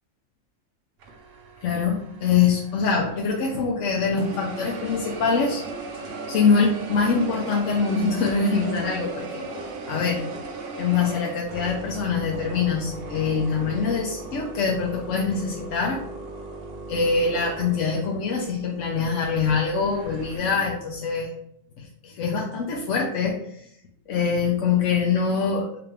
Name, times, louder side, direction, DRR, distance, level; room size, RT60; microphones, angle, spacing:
czysty mlynek, 1.0-3.8 4.2-20.4, right 3 dB, 60° right, 0.7 m, -37 dB
voice 1, 1.6-5.6 6.3-9.4 9.9-10.2 10.8-16.0 16.9-21.3 21.8-23.7 24.1-25.7, left 5 dB, 70° left, -1 dB, 0.9 m, -24 dB
3.4 x 2.9 x 3.2 m, 0.71 s
omnidirectional pair, 1.4 m